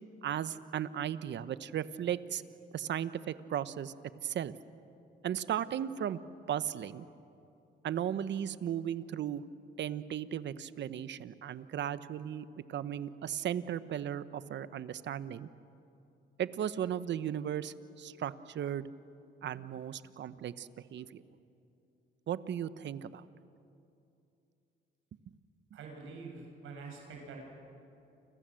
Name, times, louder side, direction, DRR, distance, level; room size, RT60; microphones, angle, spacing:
voice 1, 0.2-2.4 2.7-3.9 4.2-4.5 5.2-6.2 6.5-7.0 7.8-9.4 9.8-15.5 16.4-18.9 19.4-21.2 22.3-23.2, right 10 dB, 65° right, 14 dB, 1.0 m, -36 dB
voice 2, 25.7-27.4, right 4 dB, 85° right, 1 dB, 7.8 m, -46 dB
29.5 x 26.0 x 7.8 m, 2.7 s
cardioid pair, 90°, 20 cm